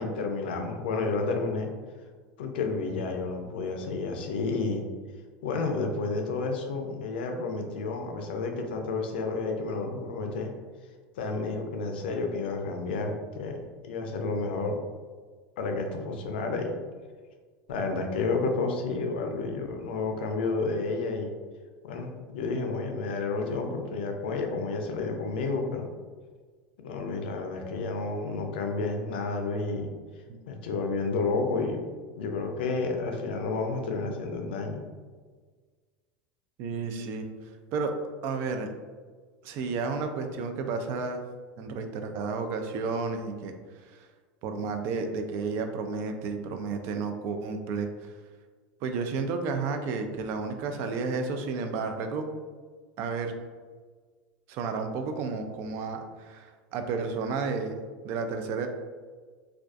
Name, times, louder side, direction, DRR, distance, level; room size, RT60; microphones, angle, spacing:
voice 1, 0.0-1.7 2.4-4.8 5.4-10.5 11.2-13.6 13.8-14.7 15.6-16.7 17.7-21.3 21.8-25.9 26.8-29.9 30.5-31.9 32.1-34.8, left 3 dB, 85° left, 3 dB, 0.4 m, -30 dB
voice 2, 36.6-37.2 37.7-37.9 38.2-38.7 39.4-41.2 41.6-43.5 43.9-44.1 44.4-47.9 48.8-52.3 53.0-53.3 54.5-58.7, right 4 dB, 55° right, 6 dB, 0.3 m, -32 dB
2.4 x 2.3 x 2.3 m, 1.5 s
supercardioid pair, 120°, 5 cm